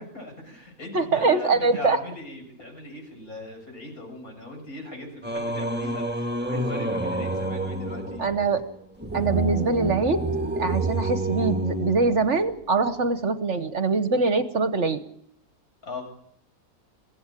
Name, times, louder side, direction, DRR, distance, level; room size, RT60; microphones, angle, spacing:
voice 1, 0.0-8.2 15.8-16.0, left 2 dB, 65° left, 1 dB, 8.1 m, -39 dB
voice 2, 0.9-2.0 8.2-8.6 9.1-10.2 10.6-15.0, right 4 dB, 50° right, 10 dB, 1.3 m, -23 dB
Singing, 5.2-12.6, right 2 dB, 5° right, 1.5 m, -29 dB
22.5 x 16.5 x 8.9 m, 0.67 s
omnidirectional pair, 1.7 m